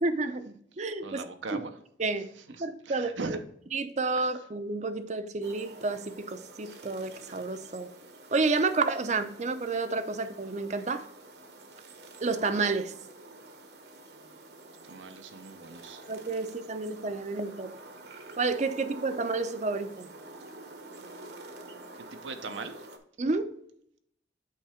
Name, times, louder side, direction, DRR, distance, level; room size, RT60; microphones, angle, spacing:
voice 1, 0.0-1.2 1.5-1.6 2.0-2.3 2.6-3.4 3.7-7.9 8.3-11.0 12.2-12.9 16.1-17.7 18.4-20.1 23.2-23.5, right 3 dB, 40° right, 0.5 m, -30 dB
voice 2, 0.7-1.8 2.4-3.4 4.1-4.4 14.8-16.0 21.9-22.9, right 4 dB, 85° right, 0.7 m, -40 dB
sound 1, 5.4-23.0, right 2 dB, 60° right, 1.0 m, -48 dB
8.5 x 3.3 x 4.9 m
head